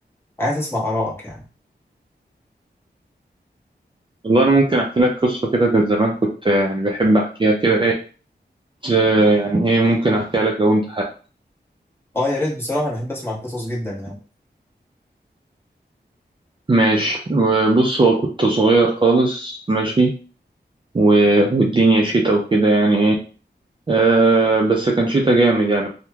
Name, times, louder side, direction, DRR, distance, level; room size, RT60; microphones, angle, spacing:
voice 1, 0.4-1.4 12.1-14.2, left 1 dB, 15° left, -6 dB, 1.2 m, -24 dB
voice 2, 4.2-7.9 8.8-11.0 16.7-20.1 20.9-23.2 23.9-25.9, right 2 dB, 30° right, 0 dB, 0.4 m, -17 dB
3.0 x 2.1 x 2.3 m, 0.37 s
wide cardioid pair, 60°, 18 cm